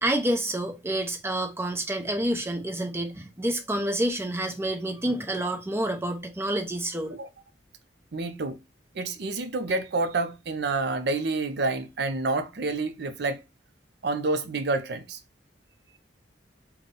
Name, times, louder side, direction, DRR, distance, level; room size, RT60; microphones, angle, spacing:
voice 1, 0.0-7.2, right 1 dB, 15° right, 0.7 m, -28 dB
voice 2, 8.1-8.6 9.0-13.4 14.0-15.2, right 3 dB, 65° right, 0.6 m, -28 dB
4.0 x 2.2 x 3.6 m
head